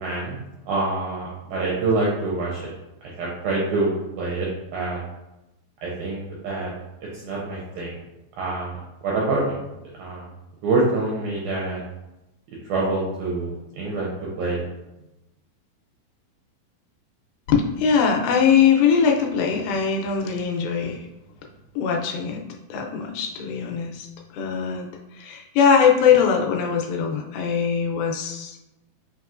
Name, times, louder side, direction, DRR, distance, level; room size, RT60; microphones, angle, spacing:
voice 1, 0.0-2.7 3.0-5.0 5.8-6.7 7.1-8.0 8.4-8.8 9.0-9.6 10.0-10.3 10.6-11.8 12.7-14.6, right 3 dB, 80° right, -4 dB, 1.8 m, -26 dB
voice 2, 17.5-21.1 21.8-22.4 22.7-24.1 24.3-24.9 25.2-28.6, left 7 dB, 85° left, 1 dB, 2.5 m, -21 dB
5.7 x 3.0 x 2.4 m, 0.95 s
omnidirectional pair, 4.2 m